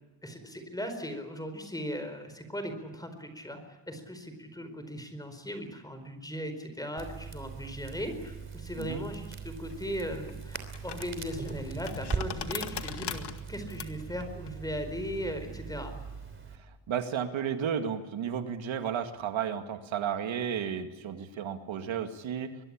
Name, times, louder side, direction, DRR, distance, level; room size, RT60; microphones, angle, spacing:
voice 1, 0.2-15.9, equal, 10° left, 8 dB, 4.5 m, -38 dB
Crackle, 7.0-16.6, right 5 dB, 25° right, 3.2 m, -40 dB
sound 1, 9.6-16.3, left 7 dB, 60° left, 2.1 m, -42 dB
voice 2, 16.9-22.5, right 8 dB, 85° right, 6 dB, 2.2 m, -33 dB
24.5 x 21.0 x 8.8 m, 1.2 s
wide cardioid pair, 145°, 45 cm